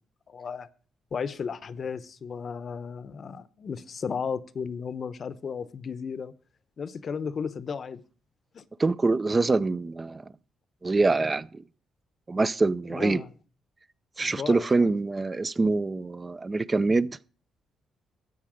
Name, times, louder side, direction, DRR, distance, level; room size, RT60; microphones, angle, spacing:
voice 1, 0.3-0.7 1.1-6.3 6.8-8.0 8.5-8.7 12.9-13.3 14.2-14.9, left 6 dB, 50° left, 0.8 m, -34 dB
voice 2, 8.8-10.3 10.8-11.6 12.3-13.2 14.2-17.1, right 3 dB, 25° right, 0.5 m, -25 dB
13.5 x 8.3 x 5.1 m
cardioid pair, 90°, 0 cm